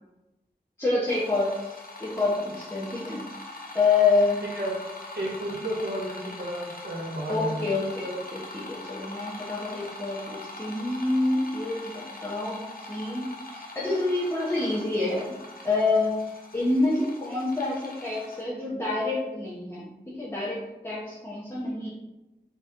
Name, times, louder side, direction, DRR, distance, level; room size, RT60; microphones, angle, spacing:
voice 1, 0.8-3.3 3.7-4.4 7.3-15.3 15.6-21.9, left 3 dB, 15° left, -8 dB, 1.1 m, -27 dB
sound 1, 1.0-18.4, left 2 dB, 55° left, 0.9 m, -42 dB
voice 2, 4.4-4.8 5.1-7.6, right 1 dB, 70° right, -3 dB, 1.0 m, -32 dB
4.0 x 3.0 x 3.7 m, 1.0 s
wide cardioid pair, 40°, 18 cm